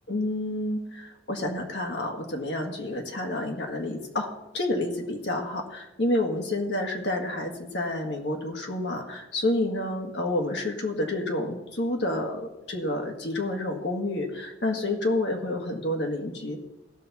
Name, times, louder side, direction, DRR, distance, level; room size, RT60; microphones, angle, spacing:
voice 1, 0.1-16.6, left 1 dB, 85° left, 1 dB, 1.7 m, -29 dB
16.5 x 5.9 x 4.2 m, 0.96 s
head